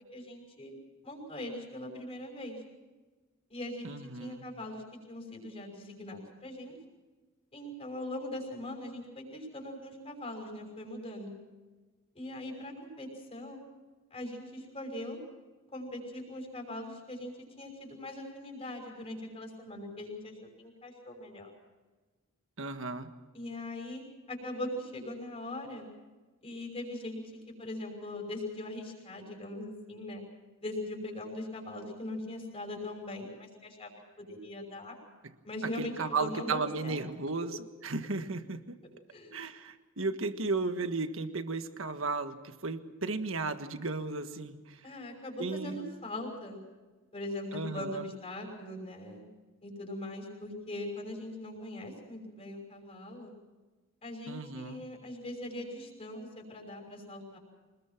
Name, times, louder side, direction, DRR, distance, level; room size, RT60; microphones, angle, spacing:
voice 1, 0.1-0.7 1.0-2.6 3.5-6.7 7.5-11.4 12.1-13.6 14.1-15.2 15.7-21.5 23.3-24.0 24.3-25.9 26.4-30.2 30.6-35.0 35.4-37.0 39.1-39.4 44.8-46.6 47.1-49.2 49.6-53.3 54.0-57.4, left 1 dB, 30° left, 2 dB, 6.0 m, -41 dB
voice 2, 3.8-4.4 22.6-23.1 35.8-37.6 37.8-38.8 39.3-44.8 45.4-45.9 47.5-48.0 54.3-54.8, right 3 dB, 70° right, 8 dB, 1.6 m, -35 dB
25.5 x 20.5 x 6.0 m, 1.2 s
head